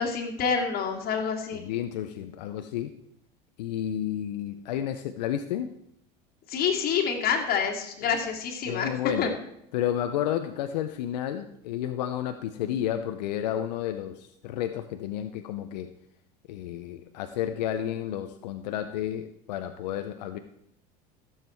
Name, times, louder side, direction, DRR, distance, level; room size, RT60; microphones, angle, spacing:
voice 1, 0.0-1.7 6.5-9.3, left 6 dB, 45° left, 1 dB, 2.8 m, -27 dB
voice 2, 1.5-3.0 3.6-5.7 8.0-8.1 8.6-9.3 9.7-15.9 16.5-20.4, left 11 dB, 85° left, 8 dB, 0.8 m, -31 dB
15.5 x 7.5 x 4.6 m, 0.74 s
supercardioid pair, 110°, 21 cm